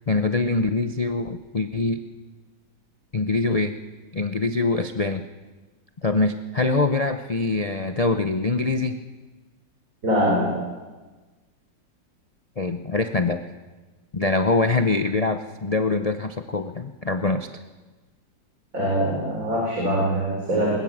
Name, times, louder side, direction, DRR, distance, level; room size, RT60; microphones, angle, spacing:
voice 1, 0.1-2.0 3.1-3.7 4.1-5.2 6.0-9.0 12.6-13.4 14.1-17.5, left 3 dB, 80° left, 7 dB, 0.3 m, -24 dB
voice 2, 10.0-10.6 18.7-20.8, equal, 45° right, -3 dB, 4.9 m, -23 dB
20.5 x 20.0 x 7.3 m, 1.2 s
omnidirectional pair, 2.0 m